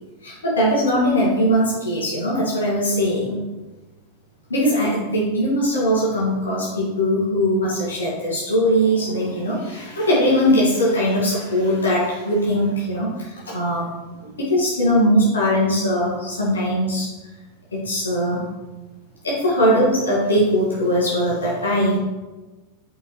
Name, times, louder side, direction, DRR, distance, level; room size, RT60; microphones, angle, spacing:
voice 1, 0.2-3.4 4.5-13.9 14.2-17.1 17.7-18.4 19.2-22.0, equal, 75° left, -6 dB, 2.2 m, -20 dB
6.1 x 4.9 x 4.6 m, 1.2 s
figure-of-eight pair, 90°, 0 cm